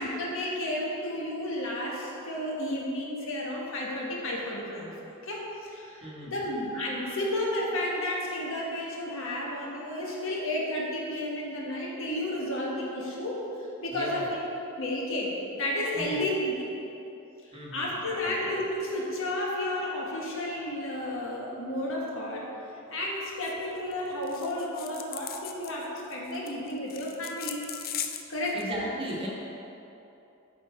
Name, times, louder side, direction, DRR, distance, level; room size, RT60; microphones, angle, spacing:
voice 1, 0.0-4.9 5.2-13.4 13.8-14.4 14.8-16.7 17.5-22.5 22.9-27.6 28.3-28.6, left 1 dB, 65° left, -3 dB, 1.4 m, -32 dB
voice 2, 6.0-6.4 13.9-14.3 15.9-16.3 17.5-17.8 18.2-18.3 28.5-29.3, equal, 25° right, -4 dB, 1.3 m, -36 dB
sound 1, 23.4-23.6 23.9-24.0 24.2-28.6, left 9 dB, 45° left, 0.4 m, -39 dB
8.5 x 5.4 x 4.3 m, 2.9 s
head